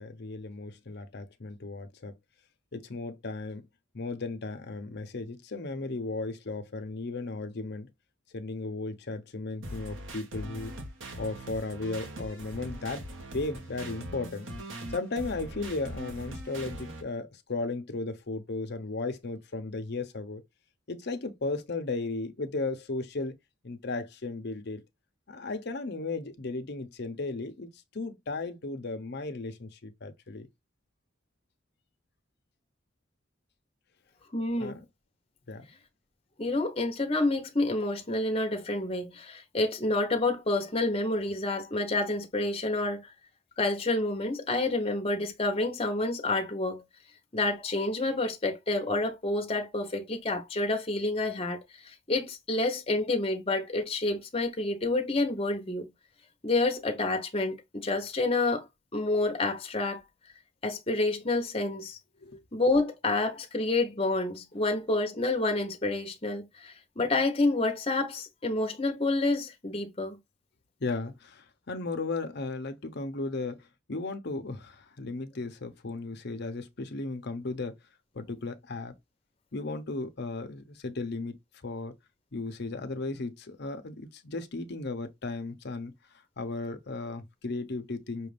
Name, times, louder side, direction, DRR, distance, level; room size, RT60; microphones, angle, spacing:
voice 1, 0.0-2.2 2.7-3.7 3.9-7.9 8.3-10.8 11.2-13.1 13.3-14.5 14.9-20.4 20.9-23.4 23.6-24.8 25.3-30.5 34.6-34.8 35.5-35.7 62.2-62.4 70.8-77.7 78.1-78.9 79.5-81.4 81.6-81.9 82.3-85.9 86.4-88.3, left 3 dB, 55° left, 0.8 m, -35 dB
sound 1, 9.6-17.0, right 1 dB, 80° right, 1.3 m, -41 dB
voice 2, 34.3-34.8 36.4-43.1 43.6-46.8 47.3-55.9 56.4-58.7 58.9-60.0 60.6-62.0 62.5-70.2, left 2 dB, 30° left, 1.0 m, -28 dB
6.0 x 2.5 x 3.3 m
head